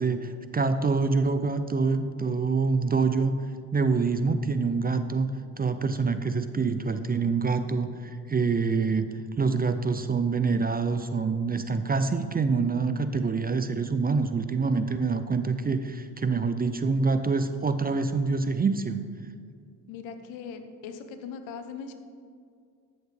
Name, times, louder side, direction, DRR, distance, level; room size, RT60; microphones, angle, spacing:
voice 1, 0.0-3.4 3.7-5.3 5.6-9.1 9.4-19.0, right 4 dB, 20° right, 10 dB, 0.4 m, -26 dB
voice 2, 19.9-21.9, left 6 dB, 85° left, 8 dB, 0.9 m, -40 dB
12.5 x 6.6 x 3.4 m, 2.2 s
supercardioid pair, 70°, 44 cm